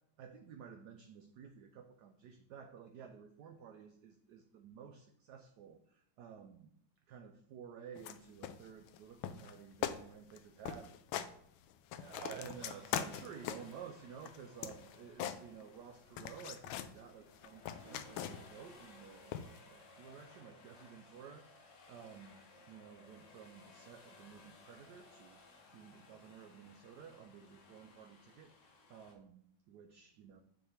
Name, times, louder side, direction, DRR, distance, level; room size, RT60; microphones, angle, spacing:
voice 1, 0.2-6.7 7.1-10.9 11.9-25.4 25.7-30.4, right 7 dB, 70° right, 5 dB, 1.1 m, -53 dB
sound 1, 8.0-8.2 8.4-9.0 9.2-9.5 9.8-10.0 10.3-10.4 10.6-11.3 11.7-13.8 14.2-15.9 16.2-16.9 17.3-18.6 19.3-19.6, left 10 dB, 85° left, 1.3 m, -41 dB
sound 2, 12.0-29.1, left 3 dB, 65° left, 1.8 m, -60 dB
8.8 x 3.2 x 5.7 m, 0.73 s
omnidirectional pair, 2.2 m